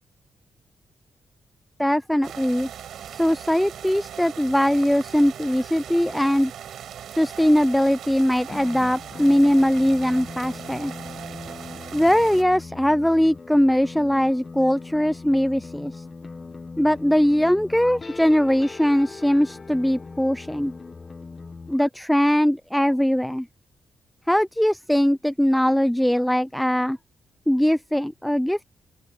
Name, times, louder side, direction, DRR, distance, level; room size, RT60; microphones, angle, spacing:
voice 1, 1.8-2.7 3.1-6.5 7.1-10.9 11.9-16.0 16.8-20.7 21.7-23.5 24.3-27.0 27.5-28.6, equal, 5° left, 0.5 m, -21 dB
sound 1, 2.2-12.4, right 9 dB, 80° right, 5.6 m, -39 dB
sound 2, 8.5-21.8, left 4 dB, 30° left, 1.0 m, -40 dB
open air
cardioid pair, 95°, 0 cm